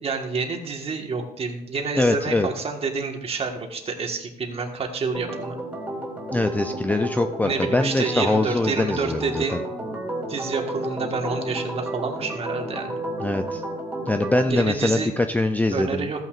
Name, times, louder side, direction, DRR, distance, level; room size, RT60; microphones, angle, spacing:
voice 1, 0.0-5.6 7.4-9.6 10.3-12.9 14.5-15.1 15.7-16.2, right 4 dB, 35° right, 3 dB, 1.5 m, -28 dB
voice 2, 2.0-2.5 6.3-9.6 13.2-13.6 14.1-16.1, left 2 dB, 10° left, 7 dB, 0.4 m, -23 dB
Organ, 5.1-14.5, right 1 dB, 10° right, 2.3 m, -32 dB
14.0 x 8.9 x 2.5 m, 0.79 s
cardioid pair, 110°, 17 cm